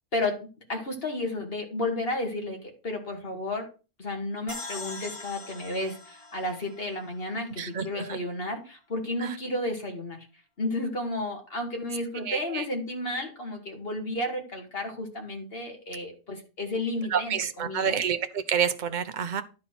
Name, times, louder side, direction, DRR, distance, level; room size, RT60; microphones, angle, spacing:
voice 1, 0.1-3.7 4.0-10.3 10.6-18.0, left 1 dB, 40° left, 3 dB, 2.1 m, -32 dB
sound 1, 4.5-7.8, left 3 dB, 20° left, 1.6 m, -42 dB
voice 2, 7.6-8.2 12.2-12.6 17.1-19.4, right 7 dB, 40° right, 10 dB, 0.7 m, -28 dB
11.0 x 4.3 x 5.9 m, 0.33 s
omnidirectional pair, 1.5 m